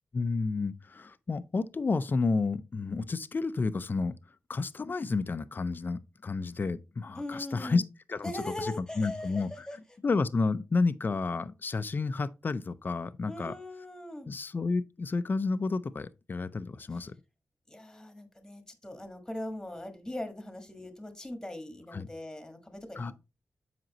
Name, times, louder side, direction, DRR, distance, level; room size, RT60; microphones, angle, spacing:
voice 1, 0.1-4.1 4.5-7.8 8.1-9.7 10.0-13.5 14.3-17.1 21.9-22.1 23.0-23.1, left 4 dB, 35° left, 0.5 m, -31 dB
voice 2, 7.1-7.8 8.2-9.8 13.2-14.3 16.9-17.0 17.7-23.1, left 1 dB, 10° left, 1.4 m, -40 dB
7.7 x 5.1 x 2.9 m
wide cardioid pair, 100°, 5 cm